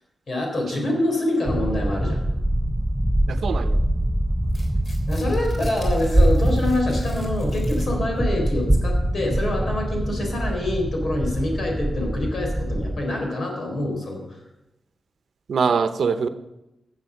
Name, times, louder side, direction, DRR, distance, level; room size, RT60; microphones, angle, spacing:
voice 1, 0.3-2.2 5.1-14.4, left 1 dB, 65° left, 1 dB, 4.0 m, -26 dB
sound 1, 1.5-13.0, right 1 dB, 10° right, 0.6 m, -23 dB
voice 2, 3.3-3.8 15.5-16.3, right 5 dB, 80° right, 10 dB, 0.8 m, -23 dB
Tearing, 4.4-8.2, equal, 30° left, 3.3 m, -41 dB
15.0 x 7.3 x 5.8 m, 0.95 s
wide cardioid pair, 105°, 0 cm